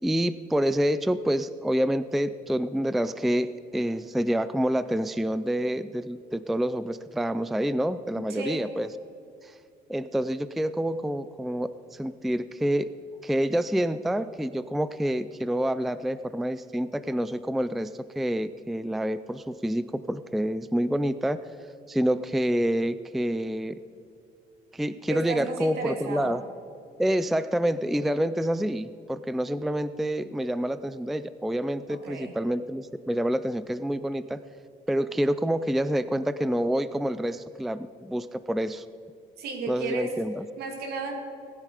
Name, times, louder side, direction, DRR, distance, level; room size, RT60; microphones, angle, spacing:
voice 1, 0.0-8.9 9.4-9.6 9.9-12.9 13.2-21.4 21.9-23.8 24.7-26.4 27.0-34.4 34.9-38.8 39.7-40.4, equal, ahead, 14 dB, 0.3 m, -27 dB
voice 2, 8.1-8.6 25.1-26.4 31.9-32.3 39.4-40.2 40.6-41.2, right 3 dB, 70° right, 3 dB, 2.6 m, -33 dB
19.5 x 10.0 x 5.0 m, 2.5 s
cardioid pair, 110°, 17 cm